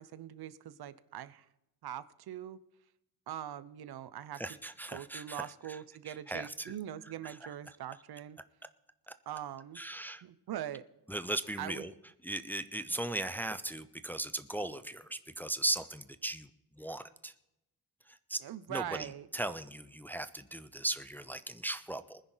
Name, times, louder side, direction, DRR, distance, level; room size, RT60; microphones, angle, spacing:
voice 1, 0.0-1.5 1.8-2.6 3.3-4.4 4.9-8.4 9.3-9.8 10.2-10.8 11.6-11.8 18.4-19.3, right 11 dB, 80° right, 17 dB, 0.7 m, -42 dB
voice 2, 4.3-5.8 6.1-6.7 7.2-7.8 9.1-9.2 9.7-10.2 11.1-11.9 12.2-16.5 16.8-17.3 18.1-18.4 18.7-22.2, right 1 dB, 5° left, 11 dB, 0.4 m, -38 dB
20.0 x 10.5 x 3.9 m, 0.89 s
wide cardioid pair, 165°, 37 cm